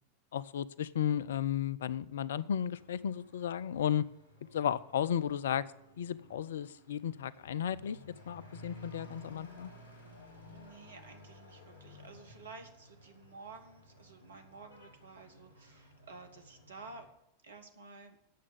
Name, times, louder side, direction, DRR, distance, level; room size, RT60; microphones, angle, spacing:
voice 1, 0.3-4.1 4.5-5.6 6.0-8.0 8.3-9.7, left 9 dB, 60° left, 19 dB, 0.4 m, -34 dB
Truck / Accelerating revving vroom, 2.6-17.1, left 1 dB, 85° right, 3.4 m, -56 dB
voice 2, 10.5-17.1 17.4-18.2, right 3 dB, 70° right, 6 dB, 1.5 m, -52 dB
9.3 x 7.3 x 8.0 m, 0.80 s
figure-of-eight pair, 90°, 0 cm